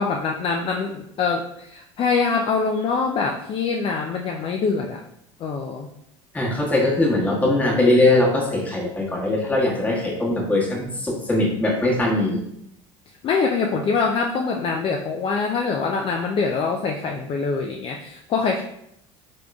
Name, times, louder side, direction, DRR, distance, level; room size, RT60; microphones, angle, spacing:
voice 1, 0.0-5.0 5.4-5.9 13.2-18.6, left 4 dB, 35° left, 2 dB, 0.4 m, -24 dB
voice 2, 6.3-12.4, left 2 dB, 10° left, -4 dB, 1.2 m, -21 dB
3.7 x 3.6 x 2.2 m, 0.77 s
hypercardioid pair, 75°, 17 cm